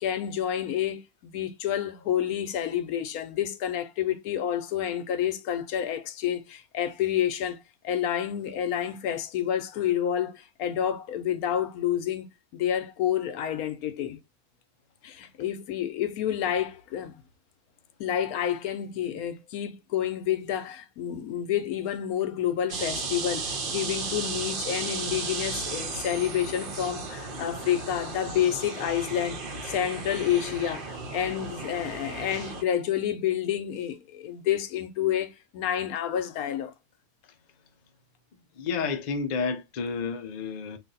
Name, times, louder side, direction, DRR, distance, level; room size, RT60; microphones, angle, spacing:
voice 1, 0.0-7.6 7.8-12.3 12.5-14.2 15.0-17.2 18.0-36.7, left 10 dB, 80° left, 1.1 m, -29 dB
sound 1, 22.7-32.6, right 4 dB, 45° right, 0.8 m, -35 dB
voice 2, 38.6-40.8, left 5 dB, 55° left, 0.4 m, -30 dB
3.3 x 2.5 x 3.8 m
omnidirectional pair, 1.6 m